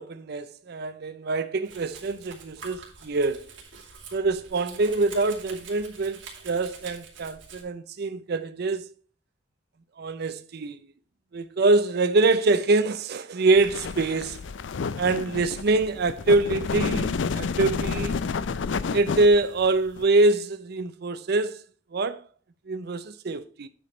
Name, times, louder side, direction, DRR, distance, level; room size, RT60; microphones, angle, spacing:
voice 1, 0.0-3.5 4.1-8.9 10.0-10.8 11.3-14.4 15.0-18.1 18.9-21.6 21.9-22.2 22.7-23.7, right 3 dB, 55° right, 0.5 m, -24 dB
Domestic sounds home sounds, 1.6-7.6, right 5 dB, 75° right, 2.5 m, -46 dB
sound 1, 13.6-20.0, left 5 dB, 70° left, 0.5 m, -30 dB
8.7 x 5.2 x 4.4 m
head